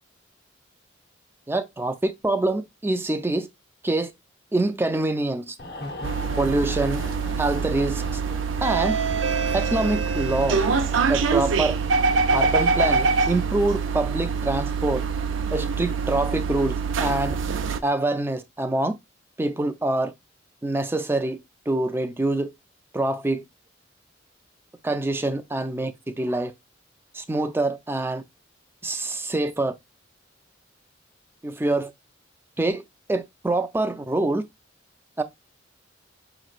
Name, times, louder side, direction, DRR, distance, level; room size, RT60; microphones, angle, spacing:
voice 1, 1.5-3.5 3.8-4.1 4.5-5.6 6.4-7.0 7.4-8.2 8.6-9.0 9.5-10.6 11.1-11.8 12.3-15.0 15.5-16.7 17.0-17.4 17.8-18.9 19.4-20.1 20.6-21.4 21.7-22.5 22.9-23.4 24.8-26.5 27.1-28.2 28.8-29.7 31.4-31.9 32.6-32.8 33.1-34.4 35.2-35.3, right 2 dB, 10° right, 0.4 m, -25 dB
sound 1, 5.6-14.1 14.4-14.6, left 1 dB, 60° left, 0.9 m, -41 dB
sound 2, 6.0-17.8, right 5 dB, 90° right, 0.5 m, -24 dB
5.1 x 3.0 x 2.4 m
head